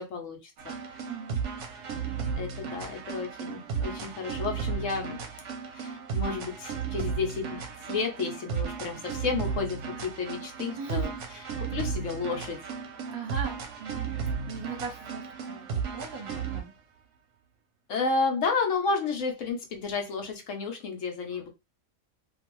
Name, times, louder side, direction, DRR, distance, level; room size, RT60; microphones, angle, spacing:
voice 1, 0.0-1.1 2.4-5.2 5.7-7.6 7.8-11.1 11.6-12.6 17.9-21.5, left 4 dB, 65° left, 1.0 m, -31 dB
sound 1, 0.6-16.7, right 6 dB, 65° right, 0.9 m, -34 dB
voice 2, 1.1-1.4 9.0-9.1 10.7-11.2 13.1-16.7, right 4 dB, 35° right, 0.9 m, -39 dB
2.5 x 2.3 x 3.0 m
omnidirectional pair, 1.5 m